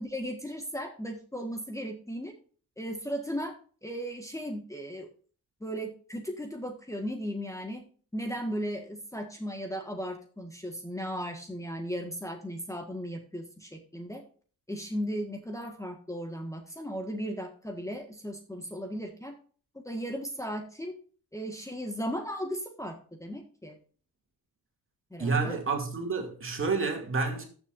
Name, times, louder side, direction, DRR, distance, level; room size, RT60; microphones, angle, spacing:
voice 1, 0.0-2.3 2.8-3.5 3.8-5.1 5.6-7.8 8.1-14.2 14.7-19.3 19.7-20.9 21.3-23.8 25.1-25.6, equal, 10° left, 1.5 m, -36 dB
voice 2, 25.2-27.4, right 4 dB, 35° right, 2.4 m, -29 dB
14.0 x 7.0 x 2.5 m
wide cardioid pair, 130°, 35 cm